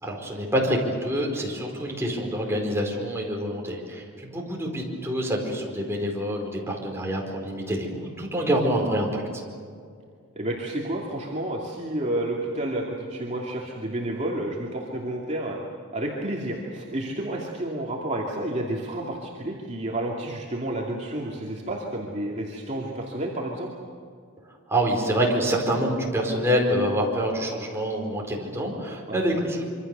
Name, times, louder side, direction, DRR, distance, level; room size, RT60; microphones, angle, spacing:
voice 1, 0.0-9.2 24.7-29.7, equal, 10° right, -1 dB, 4.7 m, -26 dB
voice 2, 10.4-15.6 15.9-23.7 29.1-29.4, right 1 dB, 30° right, -3 dB, 2.6 m, -30 dB
26.0 x 25.0 x 6.9 m, 2.2 s
head